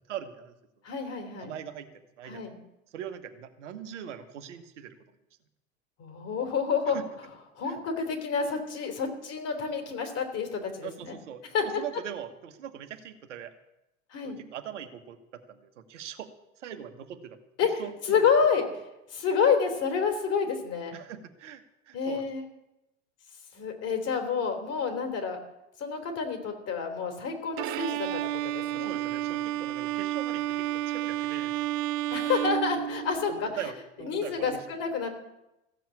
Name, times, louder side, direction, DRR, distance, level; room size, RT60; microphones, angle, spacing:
voice 1, 0.1-0.6 1.4-1.9 2.2-2.6 2.9-5.0 6.9-7.0 7.6-7.8 10.8-13.5 14.2-16.3 16.6-17.4 17.8-18.2 20.9-22.3 28.7-31.5 33.3-34.6, right 9 dB, 70° right, 7 dB, 1.4 m, -41 dB
voice 2, 0.8-1.5 2.3-2.5 6.0-7.0 7.6-11.2 11.5-11.8 14.1-14.4 17.6-18.8 19.1-20.9 21.9-22.5 23.5-25.4 25.8-28.9 32.1-33.5 34.0-35.1, left 6 dB, 40° left, 5 dB, 3.4 m, -29 dB
Bowed string instrument, 27.6-33.5, right 14 dB, 45° right, 0.6 m, -31 dB
15.0 x 7.7 x 8.5 m, 0.92 s
figure-of-eight pair, 80°, 38 cm